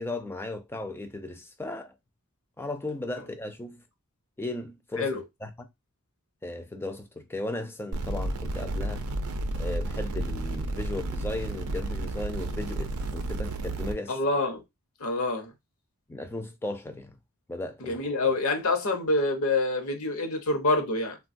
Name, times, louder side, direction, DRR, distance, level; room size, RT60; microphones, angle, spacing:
voice 1, 0.0-1.9 2.6-3.8 4.4-5.5 6.4-9.0 9.6-14.2 16.1-17.1 17.5-18.3, left 2 dB, 10° left, 0.4 m, -36 dB
sound 1, 7.9-13.9, right 1 dB, 80° right, 0.5 m, -32 dB
voice 2, 14.1-14.6 15.0-15.5 17.8-21.2, left 2 dB, 75° left, 0.8 m, -26 dB
3.4 x 2.2 x 2.5 m
head